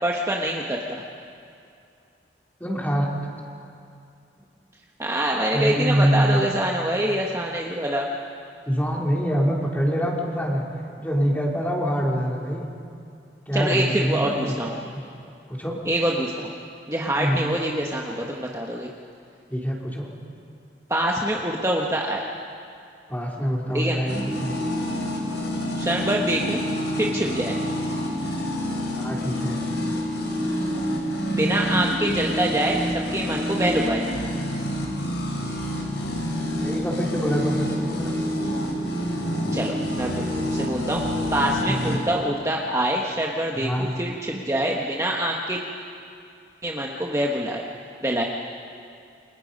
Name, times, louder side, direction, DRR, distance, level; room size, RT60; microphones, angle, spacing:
voice 1, 0.0-1.0 5.0-8.1 13.5-14.7 15.8-16.5 16.9-18.9 20.9-22.2 23.7-24.0 25.7-26.6 27.0-27.6 31.3-32.8 33.1-34.0 39.5-40.1 40.5-41.0 41.3-45.6 46.6-47.6 48.0-48.3, right 1 dB, 15° right, -1 dB, 1.3 m, -25 dB
voice 2, 2.6-3.1 5.5-6.4 8.7-10.6 11.0-12.7 13.5-14.6 14.9-15.0 15.5-15.8 17.2-17.5 19.5-20.1 23.1-24.5 29.0-29.6 36.6-38.1 41.7-42.0 43.6-43.9, equal, 10° left, -2 dB, 3.4 m, -25 dB
sound 1, 24.1-42.0, equal, 90° left, 4.8 m, -27 dB
28.5 x 25.0 x 5.4 m, 2.5 s
head